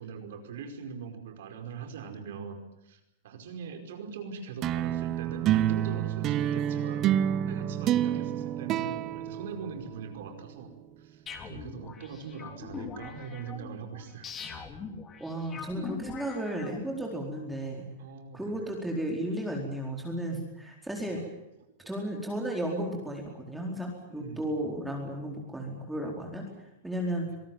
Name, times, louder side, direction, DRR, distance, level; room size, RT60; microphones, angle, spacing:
voice 1, 0.0-7.2 7.5-10.7 11.0-14.3 18.0-18.6 21.1-21.2 24.1-24.6, right 6 dB, 70° right, 6 dB, 5.1 m, -42 dB
sound 1, 4.6-10.2, right 11 dB, 35° right, 0.9 m, -28 dB
sound 2, 11.3-17.1, left 6 dB, 25° left, 3.5 m, -42 dB
voice 2, 15.2-17.8 18.3-21.2 21.9-26.4 26.8-27.3, right 1 dB, 5° right, 0 dB, 4.4 m, -34 dB
25.5 x 18.5 x 9.1 m, 0.87 s
hypercardioid pair, 135°, 0 cm